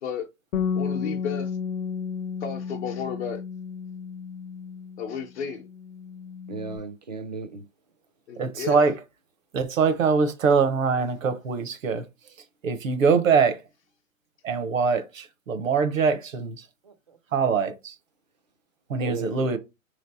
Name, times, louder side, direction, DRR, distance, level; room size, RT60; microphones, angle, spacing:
Bass guitar, 0.5-5.2 5.5-6.8, left 6 dB, 85° left, 0.9 m, -32 dB
voice 1, 0.7-1.6 2.4-3.4 5.0-5.7 8.3-8.8, left 7 dB, 55° left, 0.8 m, -32 dB
voice 2, 6.5-7.6 16.8-17.2 19.0-19.6, right 4 dB, 35° right, 0.4 m, -35 dB
voice 3, 8.4-8.9 9.5-12.0 12.6-13.6 14.4-16.6 17.3-17.9 18.9-19.6, right 5 dB, 70° right, 1.0 m, -23 dB
3.2 x 3.2 x 4.1 m
hypercardioid pair, 165°, 41 cm